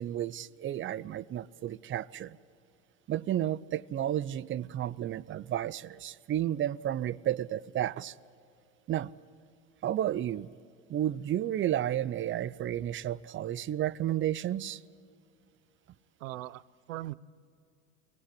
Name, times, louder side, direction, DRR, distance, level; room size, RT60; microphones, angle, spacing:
voice 1, 0.0-2.4 3.1-8.1 8.9-9.1 9.8-10.5 10.9-14.8, right 12 dB, 30° right, 0.6 m, -32 dB
voice 2, 16.2-17.1, right 16 dB, 85° right, 0.7 m, -40 dB
23.0 x 18.0 x 8.6 m
hypercardioid pair, 90°, 38 cm